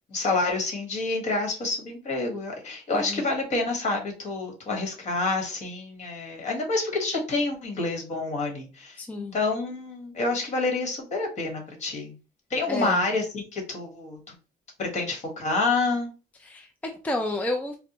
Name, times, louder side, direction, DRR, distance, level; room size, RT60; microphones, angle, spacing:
voice 1, 0.1-12.1 12.5-14.2 14.8-16.1, left 3 dB, 45° left, 2 dB, 1.4 m, -28 dB
voice 2, 2.9-3.3 9.0-9.4 12.7-13.0 16.4-17.8, left 1 dB, 10° left, 4 dB, 0.4 m, -31 dB
4.3 x 2.0 x 2.9 m, 0.34 s
cardioid pair, 110°, 17 cm